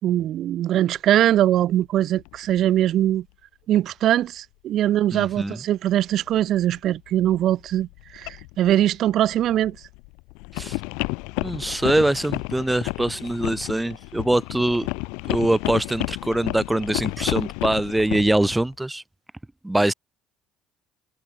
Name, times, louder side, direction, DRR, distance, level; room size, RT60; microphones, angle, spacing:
voice 1, 0.0-3.3 3.7-7.9 8.1-9.8, right 12 dB, 60° right, 3.7 m, -21 dB
sound 1, 1.4-1.5 2.2-2.7 3.1-3.2 5.2-5.3 6.1-18.7, left 30 dB, 75° left, 1.7 m, -32 dB
voice 2, 5.1-5.6 10.5-10.8 11.4-14.9 15.3-19.0 19.6-19.9, right 1 dB, 10° right, 1.4 m, -23 dB
hypercardioid pair, 60°, 0 cm